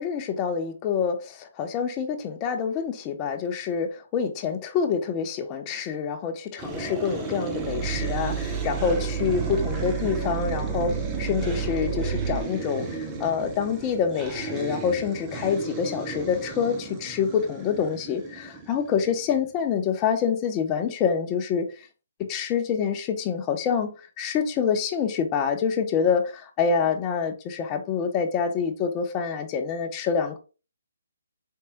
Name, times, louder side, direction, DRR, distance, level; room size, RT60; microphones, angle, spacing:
voice 1, 0.0-21.9 22.2-30.4, left 6 dB, 25° left, 0.7 m, -26 dB
sound 1, 6.6-19.5, right 3 dB, 15° right, 0.7 m, -35 dB
Growling, 7.5-12.5, right 7 dB, 55° right, 1.6 m, -30 dB
4.5 x 3.3 x 2.9 m
hypercardioid pair, 150°, 0 cm